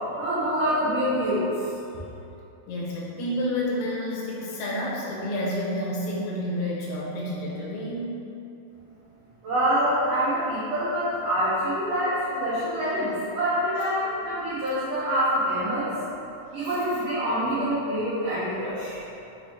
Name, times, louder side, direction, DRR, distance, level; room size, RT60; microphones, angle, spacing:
voice 1, 0.2-1.7 9.4-15.9 16.5-19.0, equal, 85° right, -11 dB, 1.4 m, -26 dB
voice 2, 2.7-8.1, left 1 dB, 75° left, -6 dB, 2.4 m, -29 dB
6.0 x 3.2 x 2.7 m, 2.8 s
omnidirectional pair, 4.2 m